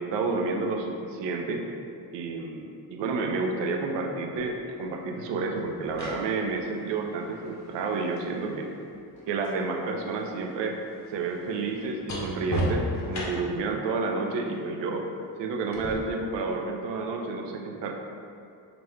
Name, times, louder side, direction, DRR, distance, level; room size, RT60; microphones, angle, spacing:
voice 1, 0.0-1.6 2.1-8.7 9.3-10.8 11.1-15.1 15.4-17.9, right 3 dB, 60° right, 2 dB, 0.6 m, -30 dB
sound 1, 4.4-4.5 5.6-9.6 9.9-13.7 15.7-15.9, equal, 35° left, 0.9 m, -35 dB
3.0 x 2.6 x 2.8 m, 2.4 s
hypercardioid pair, 40°, 50 cm